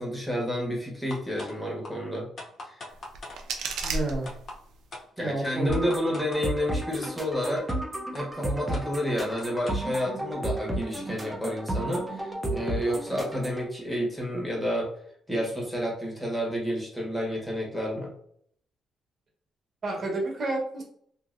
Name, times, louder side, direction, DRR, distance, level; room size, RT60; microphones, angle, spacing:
voice 1, 0.0-2.3 2.6-2.8 5.2-7.7 8.1-14.9 15.3-18.1, equal, 5° left, -3 dB, 1.2 m, -30 dB
sound 1, 1.1-1.5 1.8-1.9 2.4-3.4 3.8-3.9 4.3-4.6 4.9-5.0 5.4-6.4 7.0-7.1 7.4-7.8 8.1-8.2 8.7-9.8, left 2 dB, 50° left, 0.7 m, -41 dB
sound 2, 2.9-4.9, right 3 dB, 80° right, 0.5 m, -34 dB
voice 2, 3.8-4.3 5.2-5.9 19.8-20.8, right 2 dB, 45° right, 0 dB, 1.0 m, -30 dB
sound 3, 5.7-13.7, right 1 dB, 15° right, 0.6 m, -33 dB
2.8 x 2.6 x 2.5 m, 0.64 s
cardioid pair, 90°, 0 cm